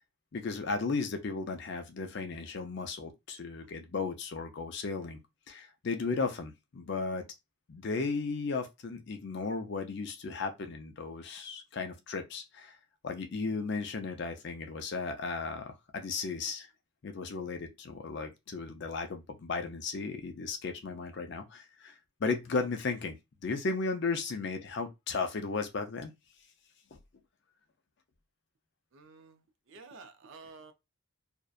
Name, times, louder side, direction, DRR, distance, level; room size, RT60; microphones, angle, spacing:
voice 1, 0.3-5.2 5.5-7.3 7.7-12.8 13.0-16.7 17.0-21.9 22.2-23.2 23.4-26.1 26.9-27.0, left 4 dB, 50° left, 0.4 m, -35 dB
voice 2, 28.9-30.7, right 4 dB, 60° right, 0.4 m, -52 dB
2.6 x 2.1 x 2.3 m
head